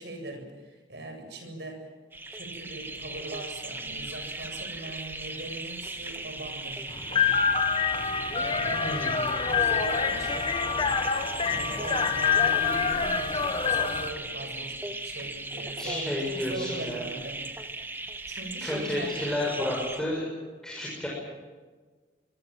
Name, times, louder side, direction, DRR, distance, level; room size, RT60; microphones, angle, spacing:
voice 1, 0.0-1.9 2.3-7.4 8.3-11.0 11.4-17.4 17.7-17.8 18.2-19.5, right 2 dB, 75° right, 5 dB, 7.9 m, -40 dB
sound 1, 2.1-20.0, right 2 dB, 10° right, 1.8 m, -38 dB
sound 2, 6.9-14.1, left 6 dB, 30° left, 1.6 m, -26 dB
voice 2, 8.8-9.3 15.8-17.1 18.6-20.2 20.6-21.1, left 1 dB, 5° left, -4 dB, 6.7 m, -31 dB
26.5 x 23.0 x 7.6 m, 1.4 s
head